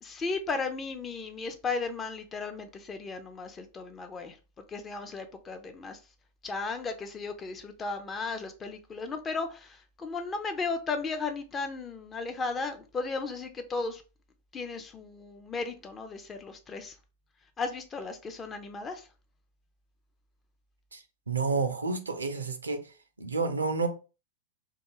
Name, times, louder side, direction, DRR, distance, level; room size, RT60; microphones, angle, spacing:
voice 1, 0.0-4.4 4.7-6.0 6.4-14.0 14.5-16.9 17.6-19.1, left 4 dB, 20° left, 0.5 m, -35 dB
voice 2, 20.9-22.8 23.2-23.9, right 4 dB, 80° right, 0.5 m, -30 dB
2.6 x 2.3 x 2.8 m
figure-of-eight pair, 95°, 0 cm